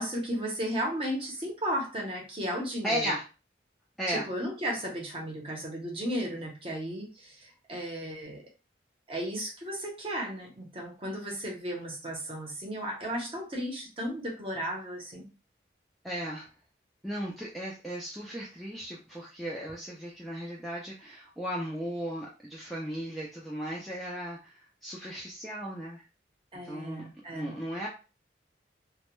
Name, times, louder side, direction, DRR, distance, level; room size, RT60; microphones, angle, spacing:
voice 1, 0.0-3.0 4.1-8.4 9.1-15.3 26.5-27.5, equal, 30° right, -1 dB, 0.7 m, -34 dB
voice 2, 2.8-3.2 4.0-4.3 16.0-16.5 17.0-26.0 26.6-27.9, equal, ahead, -4 dB, 0.3 m, -36 dB
2.1 x 2.1 x 3.0 m, 0.32 s
head